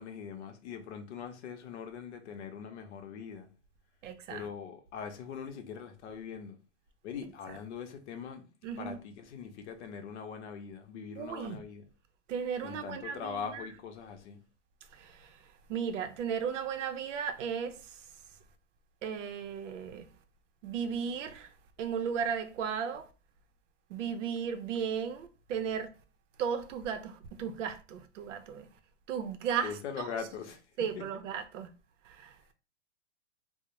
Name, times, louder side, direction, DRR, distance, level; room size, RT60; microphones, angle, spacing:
voice 1, 0.0-3.5 4.3-6.6 7.0-8.4 8.8-11.8 12.6-14.4 29.6-30.6 31.0-31.1, left 7 dB, 60° left, 0.7 m, -42 dB
voice 2, 4.0-4.5 8.6-9.0 11.2-11.6 12.3-13.7 14.9-15.4 15.7-18.0 19.0-20.1 20.6-21.5 21.8-23.1 23.9-25.9 26.4-28.7 29.1-30.1 30.8-31.7 32.0-32.5, right 7 dB, 75° right, 0.6 m, -35 dB
2.4 x 2.0 x 3.0 m
hypercardioid pair, 135°, 38 cm